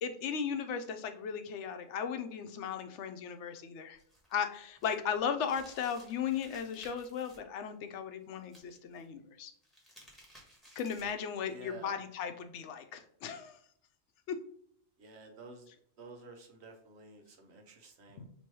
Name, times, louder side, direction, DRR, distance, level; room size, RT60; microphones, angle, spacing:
voice 1, 0.0-4.0 4.3-9.5 10.8-13.6 14.3-14.4 18.2-18.3, left 7 dB, 90° left, 8 dB, 0.9 m, -36 dB
sound 1, 4.0-7.4 8.4-9.0 9.5-11.2, right 1 dB, ahead, 1.2 m, -58 dB
voice 2, 11.4-11.9 15.0-15.6 16.0-18.3, right 3 dB, 70° right, 4 dB, 1.0 m, -51 dB
3.0 x 3.0 x 4.5 m, 0.64 s
omnidirectional pair, 1.2 m